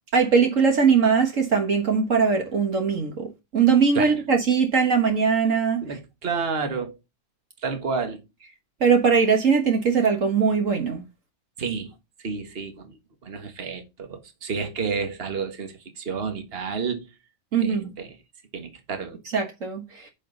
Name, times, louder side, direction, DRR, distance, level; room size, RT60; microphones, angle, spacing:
voice 1, 0.1-5.8 8.8-11.0 17.5-17.9 19.3-20.1, right 5 dB, 60° right, 1.8 m, -21 dB
voice 2, 5.8-7.0 7.6-8.2 11.6-11.9 12.2-17.1 17.6-18.2 18.5-19.2, right 5 dB, 45° right, 1.8 m, -30 dB
10.0 x 5.6 x 4.0 m
omnidirectional pair, 1.5 m